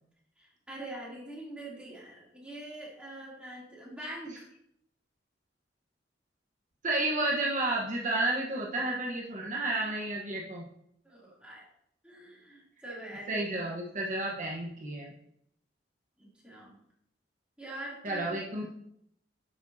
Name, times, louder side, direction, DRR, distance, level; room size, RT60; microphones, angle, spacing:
voice 1, 0.4-4.5 11.0-11.6 12.0-13.4 16.2-16.8 17.6-18.5, right 1 dB, 5° right, -6 dB, 2.9 m, -44 dB
voice 2, 6.8-10.7 13.3-15.1 18.0-18.7, right 2 dB, 45° right, -3 dB, 1.1 m, -31 dB
9.7 x 7.3 x 2.7 m, 0.74 s
head